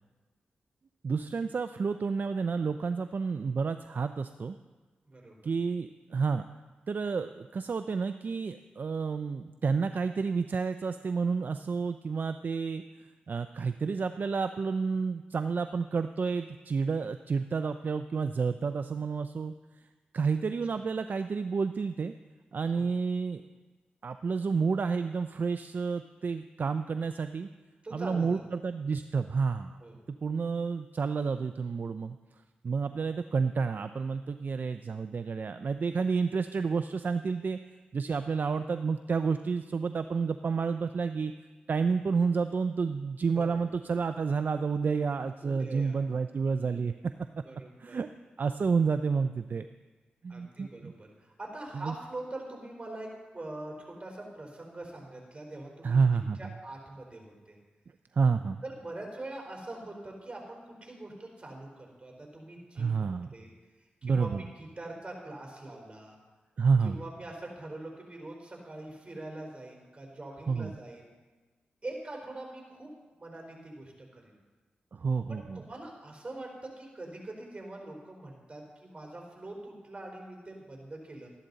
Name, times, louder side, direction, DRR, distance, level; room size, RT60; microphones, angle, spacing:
voice 1, 1.0-4.6 5.4-6.5 6.9-12.8 13.3-19.5 20.1-22.1 22.5-23.4 24.0-27.5 27.9-29.8 30.2-32.2 32.6-37.6 37.9-41.3 41.7-46.9 47.8-48.1 48.4-49.7 50.2-50.9 51.7-51.9 55.8-56.4 58.1-58.6 62.8-63.3 64.0-64.4 66.6-67.0 70.5-70.7 74.9-75.6, right 5 dB, 55° right, 10 dB, 0.4 m, -30 dB
voice 2, 5.1-5.5 22.8-22.9 27.8-28.4 29.8-29.9 43.4-43.5 45.4-46.0 47.4-48.0 50.3-56.0 56.4-57.6 58.6-63.5 64.0-66.2 66.8-71.1 71.8-74.4 75.3-81.3, right 2 dB, 30° right, -1 dB, 3.9 m, -43 dB
13.5 x 11.5 x 4.0 m, 1.3 s
cardioid pair, 50°, 4 cm